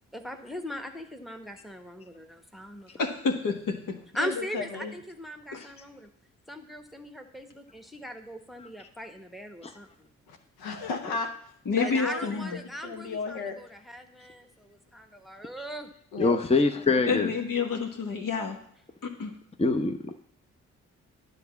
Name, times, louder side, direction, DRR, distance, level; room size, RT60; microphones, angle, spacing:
voice 1, 0.1-2.9 4.1-6.1 6.5-10.1 11.8-15.9, equal, ahead, 5 dB, 1.1 m, -39 dB
voice 2, 3.0-4.0 5.5-5.7 11.6-12.6 17.1-18.6 19.0-19.3, left 5 dB, 60° left, 3 dB, 1.5 m, -29 dB
voice 3, 4.2-4.9 10.3-11.3 11.7-12.4 12.8-13.6 16.1-16.4, left 4 dB, 75° left, 4 dB, 1.0 m, -34 dB
voice 4, 16.2-17.3 19.6-20.0, left 3 dB, 15° left, 6 dB, 0.8 m, -24 dB
9.9 x 4.0 x 7.1 m, 0.66 s
hypercardioid pair, 40°, 37 cm